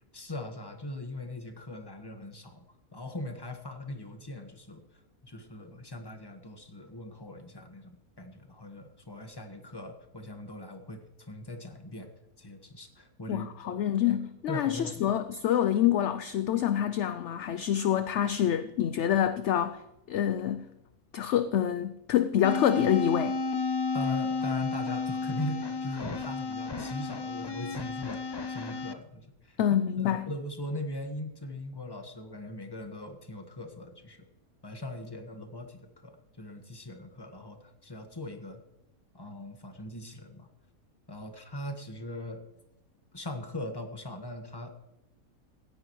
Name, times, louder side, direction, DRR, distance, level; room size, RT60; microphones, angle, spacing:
voice 1, 0.1-2.7 2.9-12.1 12.4-13.8 14.1-14.2 14.5-15.1 23.9-29.6 30.0-34.3 34.6-38.6 39.1-40.5 41.1-42.4 43.1-44.9, left 1 dB, 15° left, 1.4 m, -40 dB
voice 2, 13.3-19.8 20.1-20.6 21.1-23.3 29.6-30.3, left 10 dB, 65° left, 0.8 m, -27 dB
sound 1, 22.4-28.9, left 3 dB, 40° left, 0.3 m, -32 dB
15.5 x 10.5 x 3.1 m
omnidirectional pair, 1.6 m